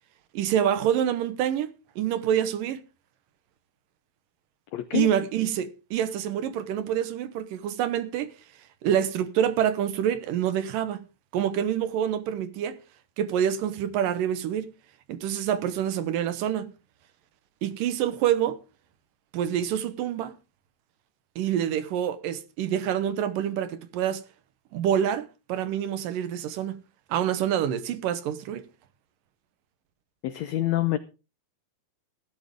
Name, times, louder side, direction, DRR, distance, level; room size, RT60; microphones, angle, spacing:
voice 1, 0.3-2.8 4.9-8.3 8.8-11.0 11.3-12.8 13.2-14.7 15.1-16.7 17.6-18.6 19.3-20.3 21.4-24.2 24.7-26.8 27.1-28.7, right 10 dB, 75° right, 2.6 m, -27 dB
voice 2, 4.7-5.1 30.2-31.0, left 14 dB, 85° left, 1.5 m, -26 dB
16.0 x 12.5 x 3.6 m
omnidirectional pair, 4.1 m